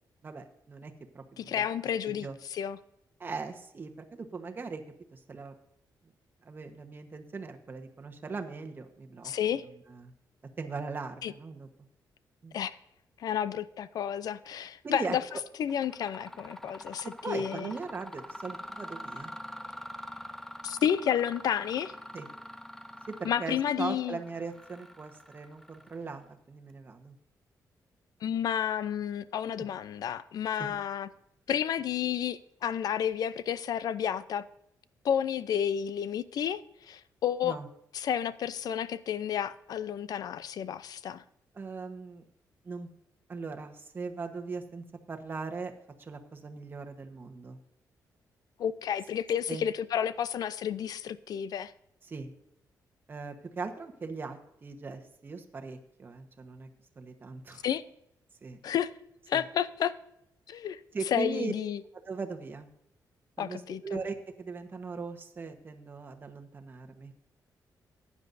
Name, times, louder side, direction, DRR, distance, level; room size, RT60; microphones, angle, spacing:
voice 1, 0.2-1.6 2.0-2.3 3.2-4.8 5.1-5.5 6.4-10.1 10.6-11.7 12.4-12.5 14.8-15.2 17.2-19.3 22.1-22.3 23.1-27.1 30.6-30.7 37.4-37.7 41.5-42.2 42.6-42.9 43.3-45.7 46.0-47.6 49.5-49.7 52.1-52.3 53.1-56.7 57.0-57.6 58.4-58.6 59.3-59.4 60.9-61.5 62.1-62.7 63.4-67.1, right 4 dB, 30° right, 1.2 m, -39 dB
voice 2, 1.4-2.8 9.2-9.7 11.2-11.3 12.5-12.8 13.2-15.2 15.6-17.7 20.6-21.9 23.2-24.2 28.2-31.1 31.5-34.5 35.0-37.6 37.9-41.2 48.6-51.7 57.6-57.8 58.6-58.9 59.3-59.9 60.5-60.8 61.1-61.8 63.4-64.0, left 9 dB, 65° left, 0.5 m, -31 dB
Mechanisms, 15.0-15.3 15.7-26.2, left 1 dB, 5° left, 0.5 m, -45 dB
15.0 x 9.7 x 2.6 m
wide cardioid pair, 140°, 7 cm